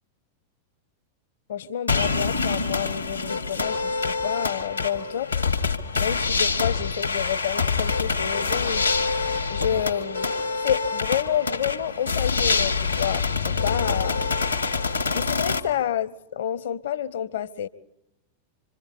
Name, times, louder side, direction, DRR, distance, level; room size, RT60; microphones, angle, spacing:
voice 1, 1.5-5.3 6.0-8.9 9.5-10.3 10.6-14.3 15.1-17.7, left 9 dB, 60° left, 17 dB, 0.8 m, -29 dB
sound 1, 1.9-15.6, left 4 dB, 85° left, 1.5 m, -25 dB
26.0 x 25.5 x 4.2 m, 0.85 s
figure-of-eight pair, 90°, 0 cm